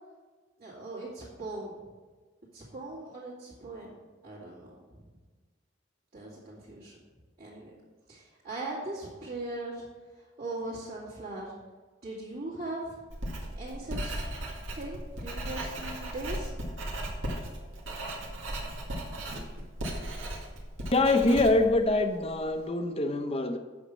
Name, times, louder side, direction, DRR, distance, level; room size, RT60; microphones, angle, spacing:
voice 1, 0.6-1.9 2.5-3.9 4.2-5.0 6.1-7.0 7.4-7.7 8.1-9.8 10.4-11.5 12.0-13.0 13.6-16.5, right 2 dB, 50° right, -9 dB, 2.5 m, -40 dB
Writing, 13.1-22.5, right 1 dB, 90° right, 2.1 m, -37 dB
voice 2, 20.9-23.6, left 2 dB, 30° left, 6 dB, 0.8 m, -24 dB
8.4 x 6.6 x 6.2 m, 1.4 s
head